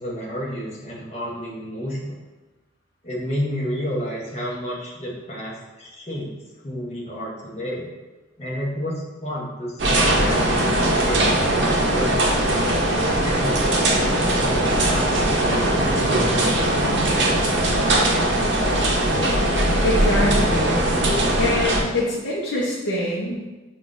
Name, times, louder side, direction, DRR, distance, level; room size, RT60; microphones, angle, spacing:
voice 1, 0.0-2.1 3.0-6.3 6.6-7.9 8.4-12.6 13.2-18.6, equal, 35° left, -4 dB, 0.8 m, -31 dB
sound 1, 9.8-21.8, right 1 dB, 65° right, 0.6 m, -20 dB
voice 2, 19.8-20.8 21.4-23.5, left 1 dB, 65° left, -6 dB, 0.7 m, -24 dB
5.7 x 2.4 x 2.5 m, 1.2 s
head